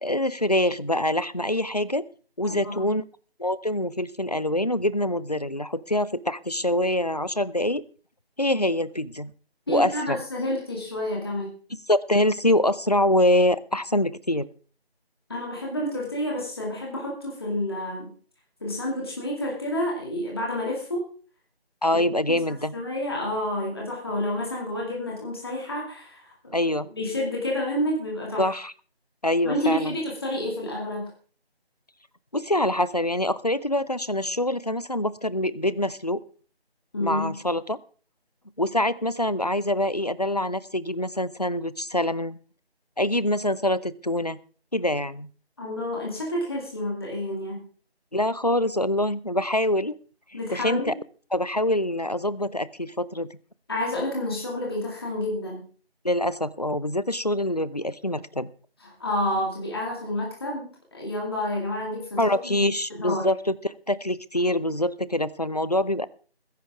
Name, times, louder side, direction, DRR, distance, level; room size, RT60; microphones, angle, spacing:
voice 1, 0.0-2.1 2.4-3.0 3.4-7.8 8.4-9.3 9.7-10.2 11.9-14.5 21.8-22.7 26.5-26.9 28.4-28.7 29.2-29.9 32.3-36.2 37.0-37.8 38.6-42.4 43.0-44.4 44.7-45.3 48.1-49.9 50.5-50.9 51.3-53.3 56.0-58.5 62.2-66.1, left 1 dB, 40° left, 18 dB, 0.5 m, -25 dB
voice 2, 2.4-2.9 9.7-11.5 15.3-18.1 18.6-21.0 21.9-22.0 22.3-22.4 22.7-26.6 26.9-28.5 29.4-31.1 36.9-37.4 45.6-47.6 50.3-50.9 53.7-55.6 58.8-63.2, left 1 dB, 25° left, -2 dB, 2.3 m, -29 dB
21.0 x 10.5 x 3.6 m, 0.40 s
figure-of-eight pair, 170°, 32 cm